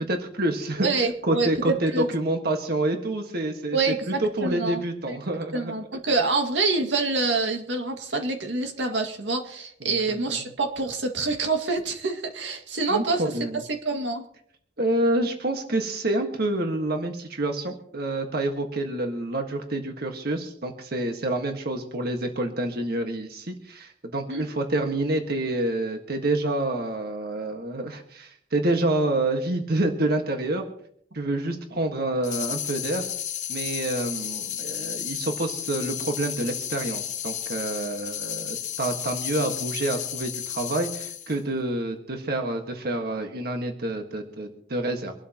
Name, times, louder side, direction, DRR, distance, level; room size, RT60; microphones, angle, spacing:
voice 1, 0.1-0.9 1.2-3.8 4.2-5.7 9.9-10.0 10.3-10.5 12.9-13.6 14.8-30.7 31.1-33.1 33.5-45.1, right 2 dB, 60° right, 4 dB, 1.6 m, -28 dB
voice 2, 0.8-2.1 3.7-4.8 5.1-5.2 5.5-13.2 13.8-14.3 24.3-24.5, right 3 dB, 90° right, 3 dB, 2.1 m, -26 dB
sound 1, 32.2-41.4, left 10 dB, 45° left, 1.0 m, -33 dB
25.0 x 12.5 x 3.0 m, 0.65 s
head